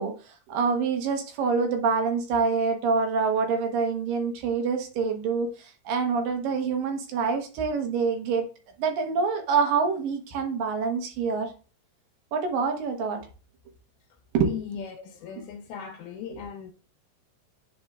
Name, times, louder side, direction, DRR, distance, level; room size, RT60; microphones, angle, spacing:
voice 1, 0.0-8.5 8.8-11.5 12.3-13.2 14.3-14.6 16.3-16.4, right 5 dB, 80° right, 2.8 m, -26 dB
voice 2, 14.5-16.7, left 8 dB, 75° left, 2.0 m, -38 dB
10.0 x 4.4 x 2.4 m
omnidirectional pair, 3.9 m